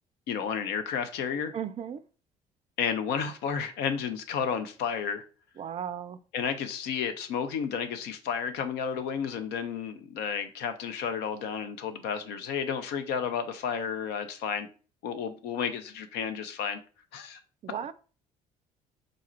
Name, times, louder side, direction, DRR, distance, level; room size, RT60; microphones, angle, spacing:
voice 1, 0.3-1.5 2.8-5.2 6.3-14.7 15.0-16.8 17.1-17.4, left 7 dB, 60° left, 0.7 m, -32 dB
voice 2, 1.5-2.0 5.6-6.2 17.6-17.9, right 8 dB, 35° right, 0.4 m, -35 dB
5.0 x 2.4 x 4.4 m
figure-of-eight pair, 50°, 20 cm